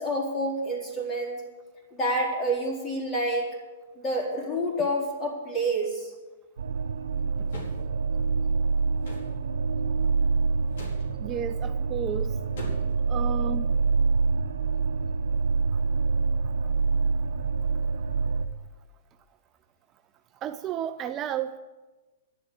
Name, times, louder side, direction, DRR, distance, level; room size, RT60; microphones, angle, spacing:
voice 1, 0.0-1.4 1.9-3.5 4.0-6.1, right 1 dB, 25° left, -1 dB, 4.2 m, -28 dB
sound 1, 6.6-18.5, right 4 dB, 75° right, 0.8 m, -26 dB
sound 2, 7.5-7.8 9.0-9.3 10.7-11.0 12.6-13.0, left 1 dB, 65° left, 4.4 m, -40 dB
voice 2, 11.2-12.4 13.1-13.7 20.4-21.6, right 9 dB, 30° right, 10 dB, 0.5 m, -32 dB
11.5 x 7.7 x 9.6 m, 1.2 s
hypercardioid pair, 115°, 0 cm